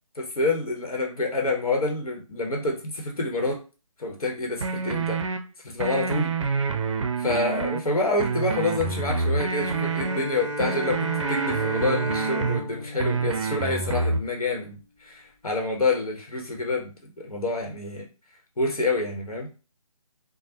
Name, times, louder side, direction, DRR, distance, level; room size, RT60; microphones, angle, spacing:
voice 1, 0.1-3.6 4.0-5.2 5.6-6.3 7.2-14.8 15.0-16.9 17.2-18.1 18.6-19.5, left 2 dB, 80° left, 1 dB, 0.9 m, -27 dB
sound 1, 4.6-5.4 5.8-7.8 8.2-10.2 10.6-12.6 13.0-14.2, right 4 dB, 55° right, 0.5 m, -27 dB
Bowed string instrument, 9.6-14.3, right 1 dB, 10° left, 1.1 m, -33 dB
3.2 x 2.1 x 2.8 m, 0.33 s
figure-of-eight pair, 150°, 18 cm